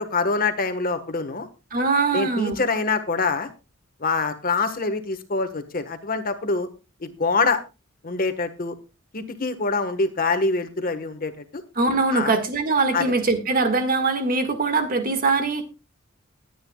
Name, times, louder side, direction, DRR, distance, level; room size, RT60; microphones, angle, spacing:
voice 1, 0.0-1.5 2.1-3.5 4.0-6.7 7.0-7.6 8.0-8.7 9.1-11.6 12.1-12.3 12.9-13.1, left 3 dB, 45° left, 9 dB, 1.3 m, -25 dB
voice 2, 1.7-2.6 11.8-15.6, right 3 dB, 45° right, 7 dB, 1.8 m, -22 dB
20.5 x 9.2 x 2.3 m, 0.28 s
head